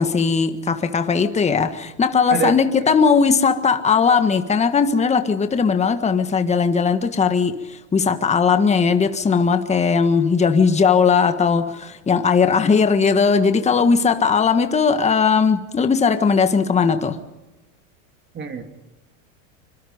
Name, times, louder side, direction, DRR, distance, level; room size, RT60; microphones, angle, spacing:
voice 1, 0.0-17.2, left 5 dB, 15° left, 8 dB, 1.5 m, -18 dB
voice 2, 2.3-2.9 18.3-18.6, right 5 dB, 25° right, 5 dB, 2.6 m, -26 dB
25.0 x 23.5 x 5.1 m, 1.0 s
supercardioid pair, 115°, 39 cm